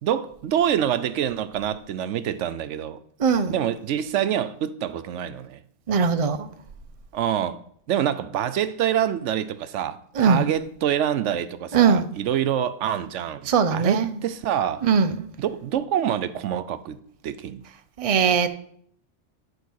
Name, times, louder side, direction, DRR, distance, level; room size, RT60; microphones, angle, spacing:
voice 1, 0.0-3.0 3.5-5.6 7.1-7.6 7.9-14.8 15.4-17.0 17.2-17.6, right 10 dB, 85° right, 1.0 m, -26 dB
voice 2, 3.2-3.6 5.9-6.5 10.1-10.4 11.7-12.1 13.4-14.2 14.8-15.3 18.0-18.5, right 6 dB, 35° right, 0.6 m, -20 dB
11.0 x 4.7 x 6.3 m
omnidirectional pair, 1.2 m